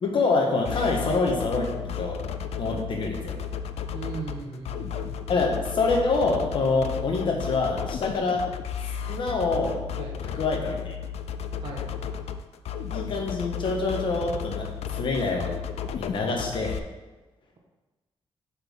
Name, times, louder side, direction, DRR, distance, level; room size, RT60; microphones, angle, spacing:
voice 1, 0.0-1.7 2.0-2.2 2.6-3.4 5.3-8.4 9.1-9.8 10.2-10.9 12.9-14.7 15.0-15.5 15.9-16.8, left 3 dB, 55° left, 1 dB, 1.2 m, -26 dB
sound 1, 0.6-16.8, left 7 dB, 85° left, 0.4 m, -33 dB
voice 2, 3.9-5.0 10.0-10.2 11.6-11.9, right 4 dB, 55° right, -2 dB, 1.2 m, -37 dB
7.9 x 4.5 x 3.6 m, 1.2 s
wide cardioid pair, 175°, 10 cm